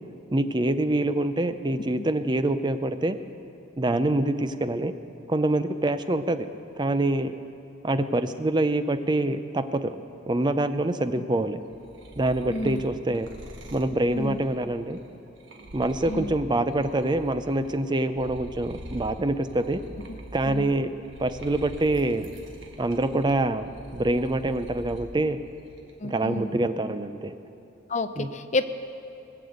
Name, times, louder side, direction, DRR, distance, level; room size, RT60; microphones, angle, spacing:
voice 1, 0.3-3.2 3.8-4.9 5.3-6.5 6.8-7.3 7.8-10.0 10.3-11.6 12.2-13.3 13.7-15.0 15.7-19.8 20.3-20.9 21.2-22.3 22.8-25.4 26.0-27.3 28.2-28.3, right 2 dB, 20° right, 10 dB, 0.5 m, -25 dB
sound 1, 11.6-17.7 18.1-25.1 25.5-26.1, equal, 65° right, 1.5 m, -44 dB
voice 2, 12.5-12.8 14.1-14.4 16.1-16.3 20.1-20.2 20.5-20.7 26.0-26.6 27.9-28.6, left 2 dB, 35° left, 10 dB, 0.6 m, -30 dB
19.5 x 6.8 x 8.0 m, 3.0 s
head